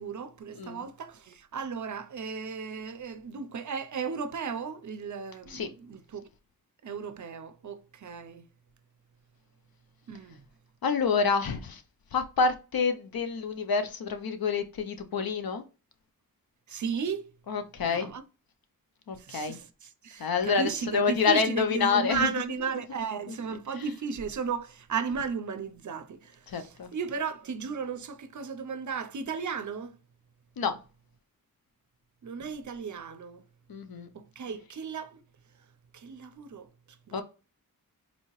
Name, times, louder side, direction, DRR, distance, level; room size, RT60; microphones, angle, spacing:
voice 1, 0.0-6.3 6.8-8.4 10.1-10.4 16.7-17.3 17.8-18.2 19.2-29.9 32.2-33.4 34.1-35.2 35.9-36.7 37.1-37.2, right 6 dB, 55° right, 0.5 m, -35 dB
voice 2, 0.5-0.9 5.5-5.7 10.8-11.8 12.1-15.6 17.5-18.1 19.1-19.6 20.2-22.3 23.7-23.8 26.5-26.9 30.6-30.7 33.7-34.1 37.1-37.2, left 5 dB, 80° left, 0.6 m, -28 dB
4.2 x 2.7 x 3.0 m
wide cardioid pair, 95°, 35 cm